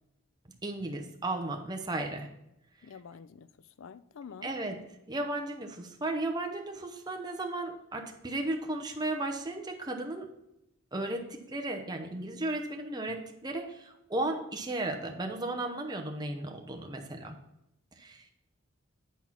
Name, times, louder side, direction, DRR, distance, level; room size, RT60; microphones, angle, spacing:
voice 1, 0.6-2.3 4.4-4.8 5.1-10.3 10.9-17.4 17.9-18.3, right 2 dB, 20° right, 3 dB, 0.8 m, -35 dB
voice 2, 2.8-3.5 3.8-4.5, left 6 dB, 65° left, 16 dB, 0.4 m, -47 dB
8.4 x 4.4 x 5.7 m, 0.84 s
head